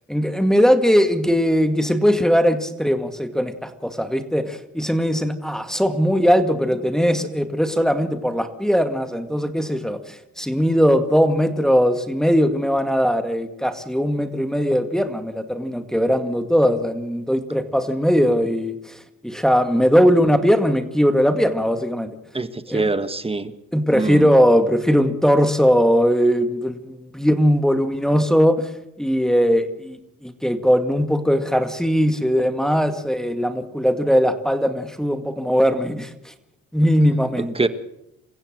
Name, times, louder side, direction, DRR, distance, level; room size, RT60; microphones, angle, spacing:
voice 1, 0.1-22.2 22.7-22.9 23.7-28.7 29.0-36.3 36.7-37.5, equal, ahead, 7 dB, 2.1 m, -19 dB
voice 2, 22.3-23.5 23.9-24.3 37.5-37.7, right 3 dB, 20° right, 11 dB, 1.6 m, -24 dB
27.5 x 15.5 x 6.6 m, 0.84 s
cardioid pair, 90°, 30 cm